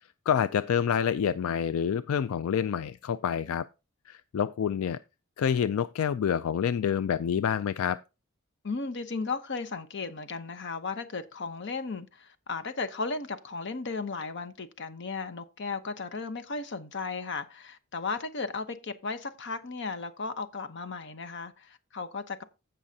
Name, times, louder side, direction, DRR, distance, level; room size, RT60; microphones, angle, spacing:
voice 1, 0.3-3.6 4.1-5.0 5.4-8.0, left 8 dB, 80° left, 0.3 m, -27 dB
voice 2, 8.6-22.4, left 4 dB, 60° left, 0.9 m, -35 dB
16.0 x 5.5 x 2.7 m
head